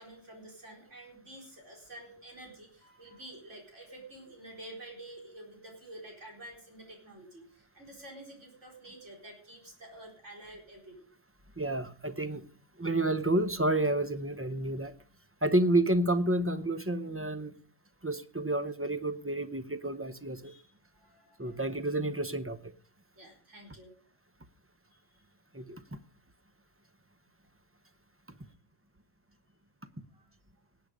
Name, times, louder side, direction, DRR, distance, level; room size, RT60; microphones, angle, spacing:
voice 1, 0.0-11.1 14.6-15.0 17.9-18.0 20.4-21.6 23.2-23.9 30.1-30.3, right 1 dB, 80° right, 0 dB, 4.6 m, -49 dB
voice 2, 11.6-12.5 12.8-14.9 15.4-17.6 18.0-20.5 21.4-22.7 25.5-26.0, right 1 dB, 15° right, 11 dB, 0.7 m, -30 dB
18.5 x 8.6 x 5.1 m, 0.42 s
omnidirectional pair, 1.2 m